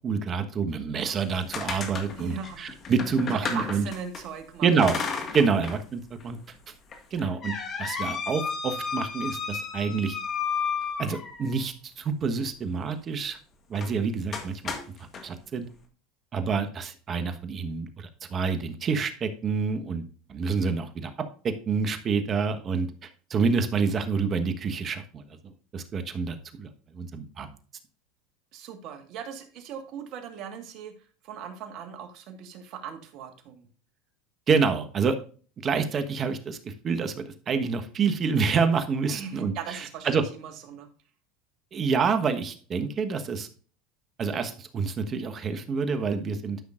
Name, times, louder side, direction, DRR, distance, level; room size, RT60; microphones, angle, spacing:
voice 1, 0.0-3.9 4.6-5.0 5.3-6.5 7.1-7.5 7.8-10.2 11.0-13.4 13.7-14.7 15.0-15.7 16.3-20.0 20.3-21.1 21.4-25.2 25.7-26.7 26.9-27.5 34.5-35.2 35.6-40.2 41.7-43.5 44.2-46.6, right 5 dB, 35° right, 8 dB, 1.2 m, -27 dB
sound 1, 1.1-4.2 4.8-5.8 6.2-6.3 6.9-11.6 13.7-13.9 14.3-15.2, left 5 dB, 40° left, 1.7 m, -33 dB
voice 2, 2.1-2.7 3.4-4.7 28.5-30.9 31.2-33.7 39.1-40.9, right 7 dB, 55° right, 7 dB, 1.6 m, -39 dB
12.5 x 5.8 x 2.5 m, 0.41 s
hypercardioid pair, 90°, 0 cm